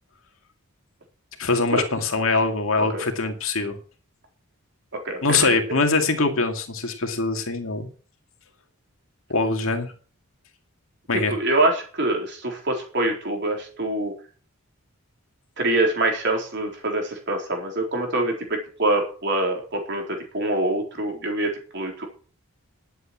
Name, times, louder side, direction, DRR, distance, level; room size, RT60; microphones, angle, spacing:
voice 1, 1.4-3.8 5.2-7.9 9.3-9.9 11.1-11.3, left 3 dB, 65° left, 5 dB, 2.3 m, -23 dB
voice 2, 5.0-5.8 11.3-14.1 15.6-22.1, right 2 dB, 50° right, 2 dB, 3.9 m, -25 dB
11.5 x 8.2 x 7.5 m, 0.41 s
head